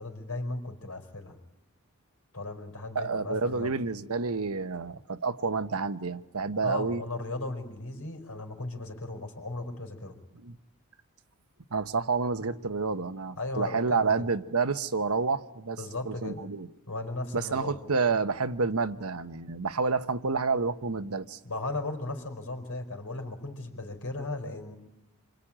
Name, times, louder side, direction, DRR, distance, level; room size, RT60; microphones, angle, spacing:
voice 1, 0.0-1.4 2.3-3.7 6.6-10.1 13.4-14.3 15.7-16.4 16.9-17.8 21.4-24.8, left 2 dB, 80° left, 4.9 m, -36 dB
voice 2, 2.9-7.0 10.4-10.6 11.7-15.8 16.1-16.7 17.3-21.4, right 4 dB, 80° right, 1.1 m, -29 dB
27.5 x 24.0 x 8.9 m
head